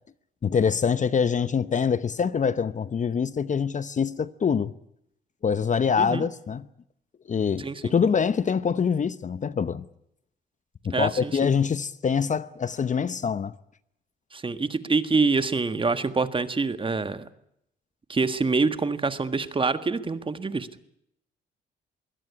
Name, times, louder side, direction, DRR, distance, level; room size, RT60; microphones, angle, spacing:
voice 1, 0.4-4.7 5.4-6.7 7.3-9.8 10.8-13.5, left 6 dB, 40° left, 0.9 m, -25 dB
voice 2, 7.6-7.9 10.9-11.3 14.3-17.3 18.1-20.9, right 4 dB, 25° right, 1.6 m, -26 dB
23.0 x 17.0 x 9.7 m
cardioid pair, 90°, 20 cm